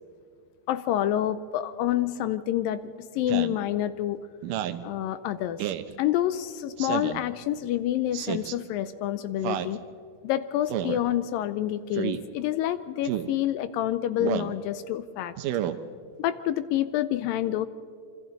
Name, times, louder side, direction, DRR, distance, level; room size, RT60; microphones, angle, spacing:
voice 1, 0.7-2.8 3.1-4.2 4.8-5.6 6.0-9.8 10.2-15.3 16.2-17.7, left 12 dB, 80° left, 13 dB, 2.2 m, -28 dB
Speech synthesizer, 3.3-3.6 4.4-4.8 5.6-5.9 6.8-7.2 8.1-8.6 9.4-9.8 10.7-11.0 11.9-12.2 13.0-13.3 14.2-14.5 15.4-15.8, right 12 dB, 75° right, 2.2 m, -30 dB
26.0 x 25.0 x 4.0 m, 2.3 s
omnidirectional pair, 4.3 m